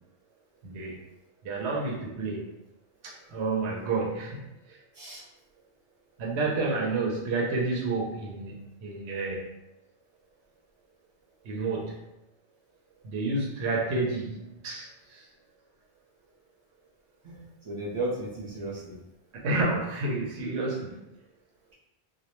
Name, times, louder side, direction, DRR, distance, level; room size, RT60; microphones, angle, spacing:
voice 1, 0.6-1.0 1.4-2.4 3.0-4.4 4.7-4.8 6.2-8.5 8.8-9.5 11.4-12.0 13.0-15.3 19.4-21.0, right 3 dB, 70° right, -2 dB, 0.8 m, -30 dB
voice 2, 17.2-18.9, right 2 dB, 40° right, -6 dB, 0.5 m, -34 dB
2.2 x 2.1 x 2.9 m, 0.91 s
omnidirectional pair, 1.2 m